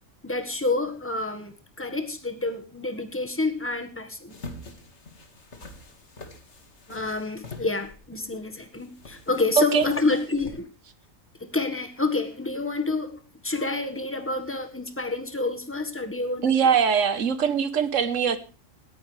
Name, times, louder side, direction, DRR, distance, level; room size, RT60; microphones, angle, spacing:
voice 1, 0.2-4.3 6.9-10.7 11.4-16.7, left 3 dB, 10° left, 1.6 m, -28 dB
sound 1, 4.3-10.5, left 3 dB, 55° left, 2.3 m, -45 dB
voice 2, 16.4-18.4, right 7 dB, 65° right, 1.5 m, -22 dB
18.5 x 14.5 x 3.4 m
omnidirectional pair, 1.4 m